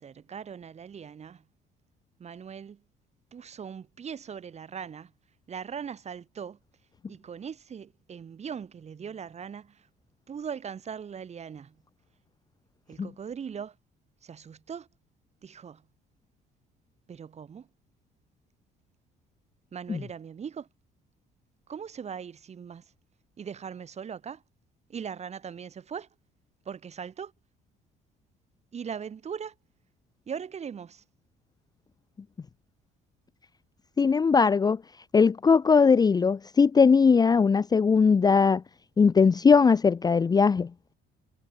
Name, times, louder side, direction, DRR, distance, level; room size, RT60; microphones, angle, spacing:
voice 1, 0.0-1.4 2.2-2.8 3.3-5.1 5.5-6.6 7.1-9.9 10.3-11.7 12.9-13.7 14.2-14.9 15.4-15.8 17.1-17.7 19.7-20.7 21.7-22.9 23.4-24.4 24.9-26.1 26.6-27.3 28.7-29.5 30.3-31.0, right 7 dB, 40° right, 6.4 m, -40 dB
voice 2, 34.0-34.8 35.1-38.6 39.0-40.7, left 5 dB, 25° left, 0.6 m, -20 dB
cardioid pair, 110°, 17 cm